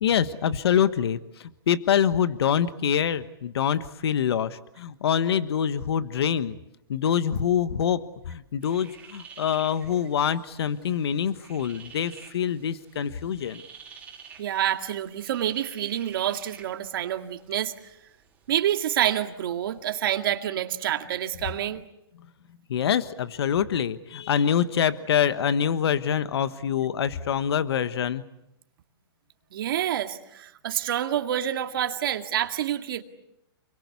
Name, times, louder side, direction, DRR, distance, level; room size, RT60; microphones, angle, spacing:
voice 1, 0.0-6.6 6.9-8.0 8.3-13.6 22.7-28.2, left 8 dB, 70° left, 12 dB, 1.3 m, -25 dB
sound 1, 8.6-19.9, right 6 dB, 10° right, 3.9 m, -50 dB
voice 2, 14.4-17.7 18.5-21.9 29.5-33.0, right 11 dB, 55° right, 6 dB, 2.1 m, -27 dB
29.0 x 22.5 x 8.4 m, 0.83 s
hypercardioid pair, 155°, 14 cm